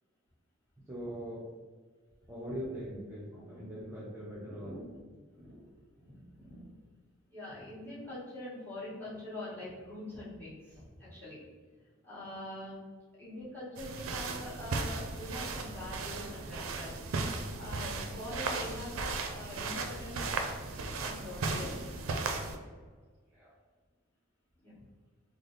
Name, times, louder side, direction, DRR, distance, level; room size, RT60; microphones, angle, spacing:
voice 1, 0.9-1.5 2.3-4.8 23.3-23.5, equal, 10° right, -9 dB, 0.5 m, -41 dB
voice 2, 3.3-3.7 4.5-5.0 5.3-6.8 7.3-12.8 13.2-16.9 17.6-20.3 21.0-21.9 24.6-24.7, left 1 dB, 10° left, -11 dB, 1.3 m, -44 dB
sound 1, 13.8-22.6, right 3 dB, 90° right, 0.4 m, -36 dB
3.2 x 2.0 x 3.8 m, 1.5 s
head